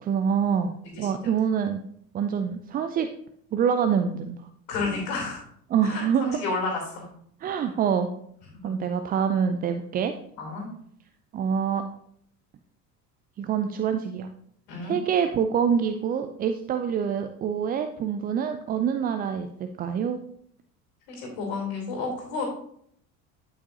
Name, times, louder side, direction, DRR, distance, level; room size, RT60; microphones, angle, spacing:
voice 1, 0.0-1.8 2.1-3.1 3.5-4.5 5.7-6.4 7.4-8.1 8.6-10.1 11.3-11.9 13.4-14.3 14.8-20.2, right 7 dB, 20° right, 8 dB, 0.3 m, -26 dB
voice 2, 4.7-5.4 5.9-7.1 8.6-8.7 10.4-10.7 14.7-15.0 21.1-22.4, left 3 dB, 65° left, 0 dB, 2.8 m, -31 dB
11.5 x 5.5 x 2.7 m, 0.67 s
figure-of-eight pair, 65°, 49 cm